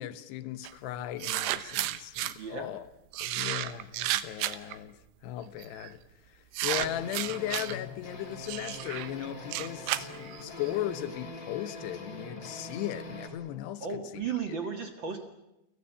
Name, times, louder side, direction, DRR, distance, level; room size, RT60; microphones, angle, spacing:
voice 1, 0.0-2.9 3.2-14.5, left 13 dB, 75° left, 2.9 m, -37 dB
sound 1, 0.6-0.7 1.2-2.3 3.1-4.8 5.6-5.9 6.5-7.8 8.5-10.7, right 15 dB, 80° right, 3.3 m, -32 dB
voice 2, 2.3-2.7 3.4-3.5 13.8-15.2, right 6 dB, 55° right, 1.3 m, -35 dB
sound 2, 6.7-13.3, left 1 dB, 25° left, 3.5 m, -43 dB
29.5 x 17.5 x 8.4 m
omnidirectional pair, 5.3 m